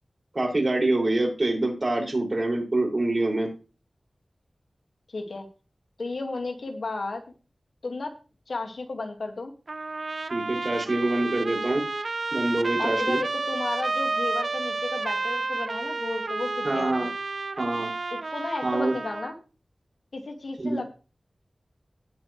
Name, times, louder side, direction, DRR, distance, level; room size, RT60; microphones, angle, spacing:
voice 1, 0.3-3.5 10.3-11.8 12.3-13.2 16.6-17.1 17.6-17.9 18.6-19.0 20.6-20.8, right 2 dB, 45° right, -1 dB, 5.9 m, -25 dB
voice 2, 5.1-5.5 6.0-7.2 7.8-8.2 8.5-9.5 12.8-17.1 18.3-19.3 20.1-20.8, left 3 dB, 80° left, 3 dB, 2.0 m, -33 dB
Trumpet, 9.7-19.4, right 3 dB, 65° right, 0.5 m, -30 dB
18.5 x 6.3 x 3.2 m, 0.34 s
cardioid pair, 40°, 0 cm